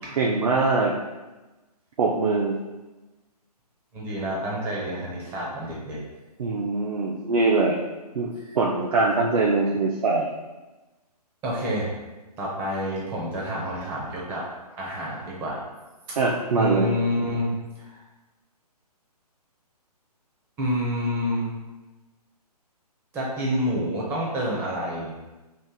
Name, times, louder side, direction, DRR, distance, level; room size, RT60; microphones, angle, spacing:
voice 1, 0.2-0.9 2.0-2.5 6.4-7.8 8.1-10.3 16.2-16.9, right 3 dB, 60° right, -1 dB, 0.5 m, -22 dB
voice 2, 3.9-6.0 8.4-8.6 11.4-11.9 12.4-14.4 14.7-15.6 16.5-18.0 20.6-21.5 23.1-25.1, equal, 10° right, -4 dB, 0.5 m, -28 dB
2.9 x 2.5 x 3.6 m, 1.1 s
hypercardioid pair, 145°, 20 cm